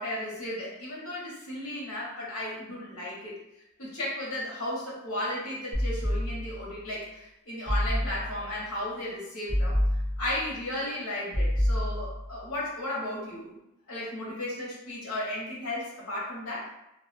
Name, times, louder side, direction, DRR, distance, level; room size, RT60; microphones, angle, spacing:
voice 1, 0.0-3.3 3.8-9.8 10.2-13.6 13.9-16.6, left 1 dB, 80° left, -5 dB, 0.9 m, -34 dB
sound 1, 5.7-6.7 7.7-8.6 9.5-10.6 11.3-12.4, equal, 15° left, 0.7 m, -28 dB
2.3 x 2.1 x 2.5 m, 0.86 s
head